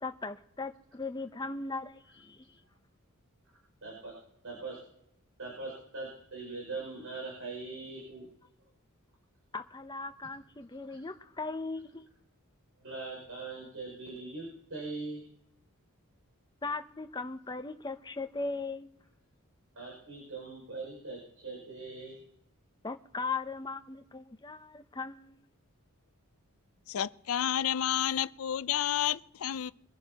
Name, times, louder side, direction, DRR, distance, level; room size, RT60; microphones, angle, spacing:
voice 1, 0.0-2.5 9.5-12.0 16.6-19.0 22.8-25.4, left 3 dB, 20° left, 0.6 m, -38 dB
voice 2, 3.8-4.2 4.4-4.8 5.4-8.3 10.9-11.0 12.8-15.2 19.7-22.2, right 3 dB, 70° right, 5.9 m, -41 dB
voice 3, 26.9-29.7, left 10 dB, 70° left, 0.4 m, -30 dB
23.5 x 11.0 x 2.9 m
head